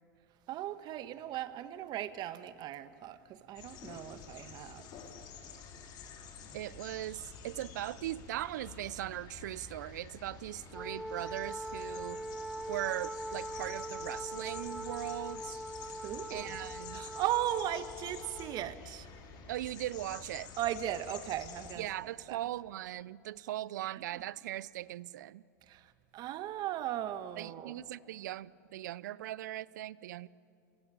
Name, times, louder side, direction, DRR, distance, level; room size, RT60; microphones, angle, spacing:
voice 1, 0.5-4.9 16.0-16.6 16.9-19.1 20.6-21.8 22.3-22.4 23.8-24.2 25.7-27.8, right 12 dB, 45° right, 1.5 m, -37 dB
sound 1, 3.6-21.7, left 6 dB, 45° left, 5.0 m, -49 dB
voice 2, 6.5-12.2 12.7-15.6 16.3-17.1 19.5-20.5 21.8-25.4 27.4-30.3, right 14 dB, 75° right, 0.6 m, -39 dB
Wind instrument woodwind instrument, 10.7-18.7, right 1 dB, 5° right, 0.6 m, -42 dB
29.5 x 22.5 x 8.7 m
hypercardioid pair, 95°, 10 cm